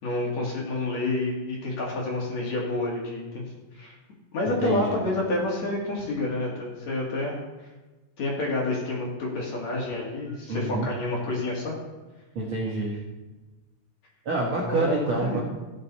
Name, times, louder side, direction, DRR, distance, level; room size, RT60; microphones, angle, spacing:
voice 1, 0.0-3.4 3.7-4.0 4.3-7.4 8.2-11.7 14.6-15.4, left 2 dB, 50° left, -3 dB, 3.3 m, -29 dB
voice 2, 4.4-5.0 10.5-10.9 12.3-13.0 14.2-15.4, right 2 dB, 55° right, -3 dB, 1.5 m, -27 dB
15.5 x 8.1 x 4.2 m, 1.2 s
omnidirectional pair, 4.5 m